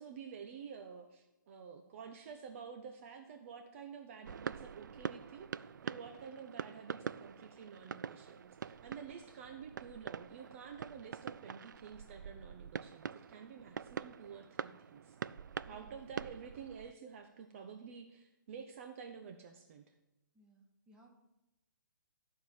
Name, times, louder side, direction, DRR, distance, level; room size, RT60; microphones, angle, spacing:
voice 1, 0.0-15.2 15.7-19.8, right 6 dB, 40° right, 5 dB, 0.9 m, -50 dB
sound 1, 4.2-16.9, right 7 dB, 65° right, 0.4 m, -45 dB
voice 2, 15.6-15.9 20.3-21.1, right 2 dB, 5° right, 0 dB, 1.7 m, -63 dB
13.5 x 4.8 x 7.3 m, 0.98 s
hypercardioid pair, 140°, 11 cm